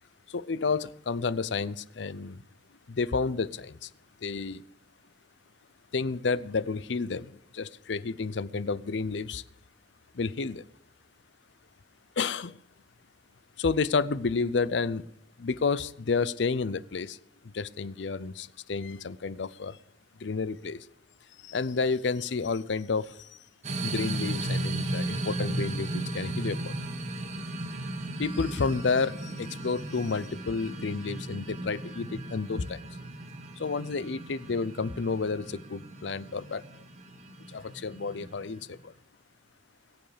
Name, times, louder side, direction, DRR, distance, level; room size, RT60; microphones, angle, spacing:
voice 1, 0.3-2.4 2.9-3.9 4.2-4.6 5.9-9.4 10.1-10.6 12.2-12.6 13.6-15.0 15.4-17.2 17.4-19.8 20.2-20.9 21.4-23.4 23.8-26.7 28.2-32.8 33.6-36.8 37.5-38.9, left 4 dB, 80° left, 18 dB, 0.6 m, -30 dB
sound 1, 23.6-38.7, right 2 dB, 40° right, 1.5 m, -36 dB
22.0 x 7.8 x 5.0 m, 0.74 s
head